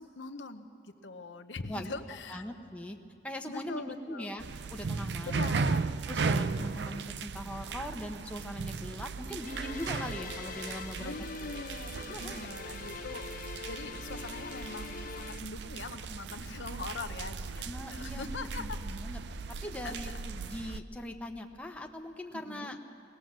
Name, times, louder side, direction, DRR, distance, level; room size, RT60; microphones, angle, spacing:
voice 1, 0.0-2.4 3.5-4.3 5.2-5.8 11.0-13.3 13.6-17.6 17.9-18.8 19.8-20.2 22.3-22.8, left 3 dB, 80° left, 8 dB, 0.9 m, -42 dB
voice 2, 2.3-3.0 3.2-4.4 4.7-5.5 6.1-11.1 12.1-12.5 17.6-19.2 19.6-22.8, left 1 dB, 5° left, 2 dB, 0.8 m, -41 dB
sound 1, 4.4-20.8, right 4 dB, 70° right, 0.5 m, -37 dB
sound 2, 9.4-15.4, left 6 dB, 45° left, 0.4 m, -44 dB
19.0 x 19.0 x 7.4 m, 2.5 s
head